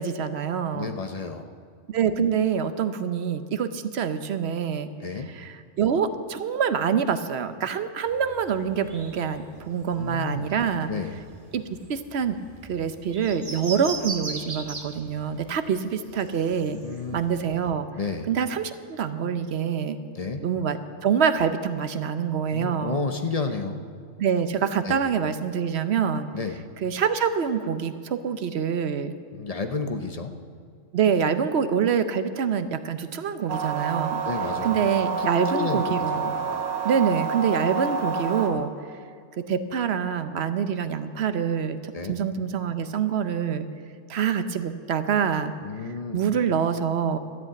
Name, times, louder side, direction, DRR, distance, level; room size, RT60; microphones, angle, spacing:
voice 1, 0.0-0.9 1.9-4.9 5.3-10.9 11.5-11.6 11.9-12.4 12.7-16.8 17.1-17.9 18.3-20.0 20.4-23.0 24.2-26.3 26.8-29.1 30.9-34.2 34.6-36.3 36.8-38.7 39.4-41.8 42.1-43.7 44.1-45.5 46.1-47.2, right 7 dB, 60° right, 10 dB, 0.9 m, -25 dB
voice 2, 0.7-1.5 5.0-5.3 9.9-10.5 10.9-11.2 16.7-17.2 18.0-18.3 20.1-20.4 22.5-23.8 24.8-25.0 26.3-26.6 29.3-30.3 34.3-34.7 35.2-35.3 35.5-35.8 36.5-36.6 41.9-42.1 45.6-46.2, left 4 dB, 35° left, 6 dB, 0.7 m, -31 dB
sound 1, 8.1-17.7, right 3 dB, 30° right, 1.1 m, -40 dB
sound 2, 33.5-38.5, right 5 dB, 90° right, 1.6 m, -28 dB
13.0 x 8.3 x 8.7 m, 2.3 s
omnidirectional pair, 1.3 m